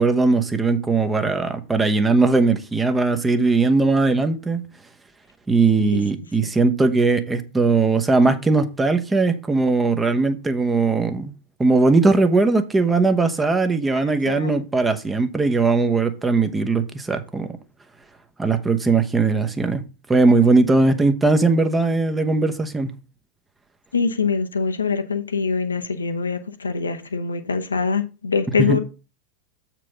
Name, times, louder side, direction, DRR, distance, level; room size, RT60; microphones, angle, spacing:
voice 1, 0.0-4.6 5.5-11.3 11.6-17.5 18.4-19.8 20.1-22.9 28.6-28.8, right 3 dB, 10° right, 0.9 m, -19 dB
voice 2, 14.0-14.7 23.9-28.8, left 5 dB, 75° left, 0.8 m, -24 dB
7.4 x 4.6 x 5.1 m
figure-of-eight pair, 90°, 0 cm